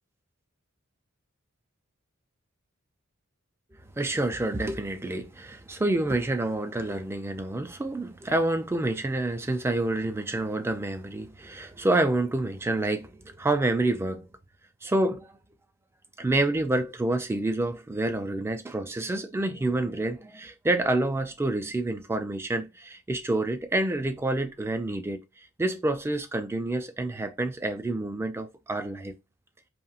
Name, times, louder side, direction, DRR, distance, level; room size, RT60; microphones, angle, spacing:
voice 1, 4.0-14.3 14.8-15.3 16.2-25.2 25.6-29.1, right 2 dB, 10° right, 0.3 m, -28 dB
2.9 x 2.8 x 2.3 m
head